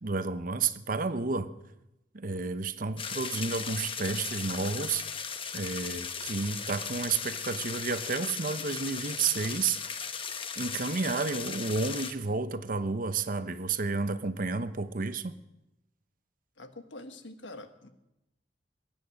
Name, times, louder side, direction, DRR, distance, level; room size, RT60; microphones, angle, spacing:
voice 1, 0.0-1.5 2.1-10.1 10.6-15.4, right 4 dB, 50° right, 0.8 m, -31 dB
sound 1, 3.0-12.1, left 6 dB, 30° left, 1.0 m, -37 dB
voice 2, 16.6-17.9, left 2 dB, 90° left, 1.4 m, -45 dB
23.0 x 9.3 x 6.4 m
head